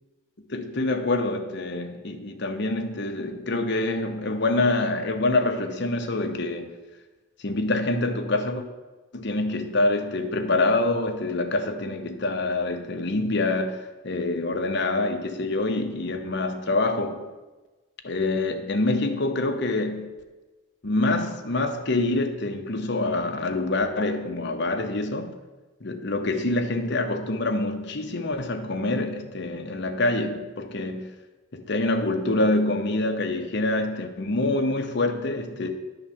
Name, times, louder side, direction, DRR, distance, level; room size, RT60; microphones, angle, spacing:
voice 1, 0.5-6.7 7.4-8.6 9.1-17.3 18.0-20.1 20.8-25.4 25.8-31.1 31.5-35.7, left 2 dB, 55° left, 5 dB, 0.9 m, -26 dB
11.0 x 3.9 x 7.0 m, 1.2 s
head